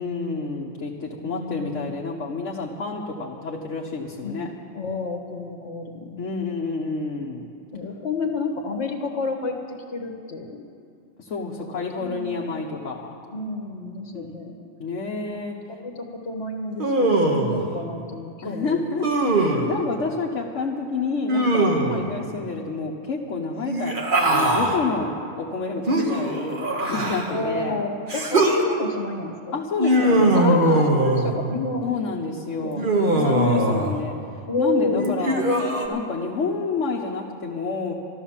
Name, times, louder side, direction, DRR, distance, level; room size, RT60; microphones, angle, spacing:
voice 1, 0.0-4.5 6.2-7.4 11.2-13.1 14.1-14.3 14.8-15.5 18.4-23.9 24.3-25.1 25.4-27.8 29.5-31.0 31.8-34.1 34.6-35.4 35.9-37.9, left 4 dB, 85° left, -3 dB, 1.4 m, -29 dB
voice 2, 1.2-2.0 4.2-6.2 7.2-7.3 7.7-10.6 11.7-12.5 13.3-14.6 15.8-19.0 21.9-22.1 27.3-29.6 30.3-31.9 32.6-33.7 34.5-35.2, left 3 dB, 65° left, 3 dB, 1.7 m, -29 dB
Human voice, 16.8-17.6 19.0-19.7 21.3-22.1 23.6-24.8 25.9-27.4 28.1-28.6 29.8-31.4 32.8-34.0 35.0-35.9, right 1 dB, 45° right, 1.5 m, -21 dB
13.0 x 12.5 x 7.3 m, 2.4 s
omnidirectional pair, 1.2 m